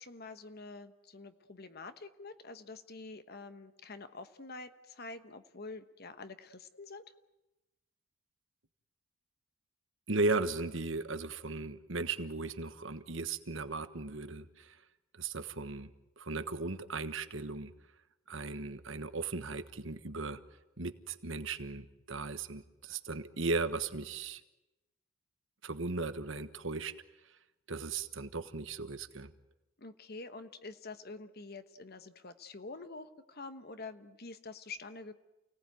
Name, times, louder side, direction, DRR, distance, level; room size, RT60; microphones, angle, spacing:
voice 1, 0.0-7.0 29.8-35.1, left 3 dB, 45° left, 10 dB, 1.1 m, -47 dB
voice 2, 10.1-14.8 15.2-15.9 16.2-17.7 18.3-20.4 20.8-24.4 25.6-26.9 27.7-29.3, right 3 dB, 60° right, 11 dB, 1.3 m, -36 dB
29.5 x 18.5 x 9.3 m, 1.0 s
head